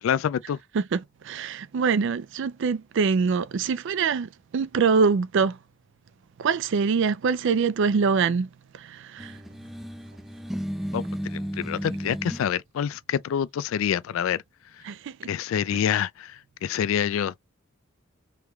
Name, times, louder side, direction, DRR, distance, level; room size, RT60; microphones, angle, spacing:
voice 1, 0.0-0.6 10.9-14.4 15.3-17.4, left 8 dB, 75° left, 0.3 m, -27 dB
voice 2, 0.7-5.6 6.4-8.5 8.7-9.3 14.8-15.3, right 5 dB, 65° right, 0.4 m, -24 dB
sound 1, 9.2-12.5, equal, ahead, 0.4 m, -33 dB
3.4 x 3.3 x 3.1 m
head